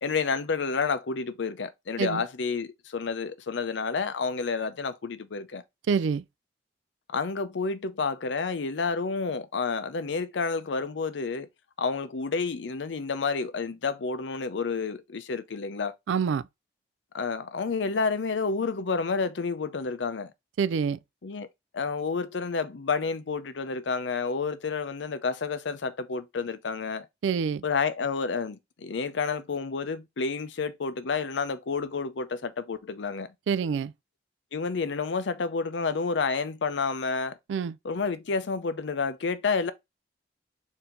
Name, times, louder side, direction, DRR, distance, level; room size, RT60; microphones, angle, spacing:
voice 1, 0.0-5.6 7.1-11.5 11.8-15.9 17.1-20.3 21.2-21.5 21.7-27.1 27.6-33.3 34.5-37.4 37.8-39.7, left 4 dB, 75° left, 0.6 m, -30 dB
voice 2, 5.9-6.2 16.1-16.4 20.6-21.0 27.2-27.6 33.5-33.9 37.5-37.8, right 6 dB, 85° right, 0.3 m, -26 dB
4.3 x 2.8 x 3.8 m
head